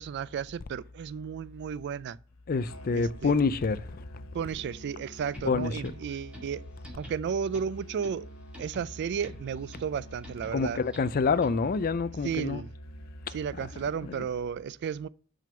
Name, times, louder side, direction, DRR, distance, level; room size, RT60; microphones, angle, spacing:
voice 1, 0.0-2.2 2.9-3.4 4.3-6.6 6.9-8.3 8.6-10.8 12.2-12.7 13.3-15.1, right 7 dB, 50° right, 0.3 m, -33 dB
voice 2, 2.5-4.2 5.4-5.8 10.5-12.6 13.3-13.4 14.0-14.3, left 4 dB, 40° left, 0.4 m, -27 dB
Musical instrument, 2.6-14.3, equal, 85° left, 1.1 m, -47 dB
sound 1, 5.3-11.8, equal, 5° right, 2.1 m, -51 dB
6.2 x 5.2 x 6.8 m
head